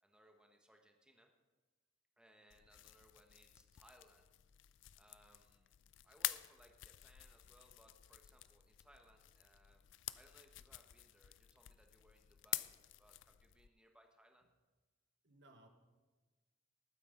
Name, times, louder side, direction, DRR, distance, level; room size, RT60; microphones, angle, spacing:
voice 1, 0.0-1.3 2.2-4.3 5.0-5.7 6.0-9.9 10.2-14.5, equal, 5° right, 3 dB, 1.2 m, -67 dB
sound 1, 2.5-13.7, left 16 dB, 60° left, 0.3 m, -49 dB
voice 2, 15.2-15.7, right 1 dB, 55° right, 5 dB, 1.4 m, -64 dB
19.5 x 9.3 x 3.9 m, 1.2 s
head